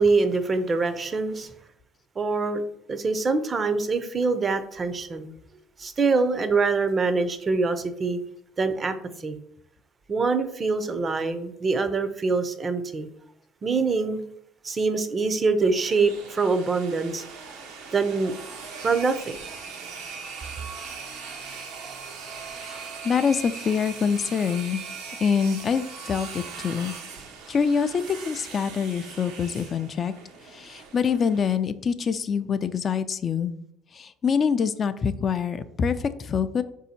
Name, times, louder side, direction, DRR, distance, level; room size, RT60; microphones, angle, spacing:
voice 1, 0.0-1.5 2.2-2.6 2.9-5.3 5.8-8.2 8.6-8.9 9.2-9.4 10.1-13.1 13.6-14.2 14.6-17.2 17.9-18.3 18.8-19.4, right 4 dB, 35° right, 0.5 m, -24 dB
sound 1, 15.6-31.5, right 5 dB, 80° right, 0.8 m, -40 dB
voice 2, 22.6-24.8 25.2-26.9 27.5-30.1 30.4-33.5 33.9-36.6, left 6 dB, 40° left, 0.3 m, -25 dB
4.2 x 2.7 x 4.1 m
supercardioid pair, 85°, 0 cm